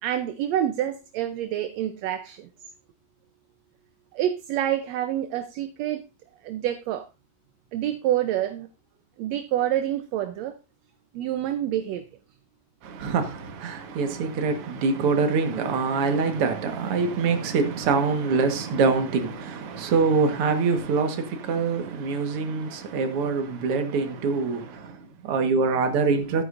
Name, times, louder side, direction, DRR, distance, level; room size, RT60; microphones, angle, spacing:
voice 1, 0.0-2.5 4.1-6.0 6.4-7.1 7.7-8.7 9.2-10.5 11.1-12.0, right 11 dB, 75° right, 1.8 m, -27 dB
voice 2, 12.8-26.4, right 4 dB, 55° right, 2.1 m, -24 dB
14.5 x 9.0 x 2.5 m
omnidirectional pair, 3.3 m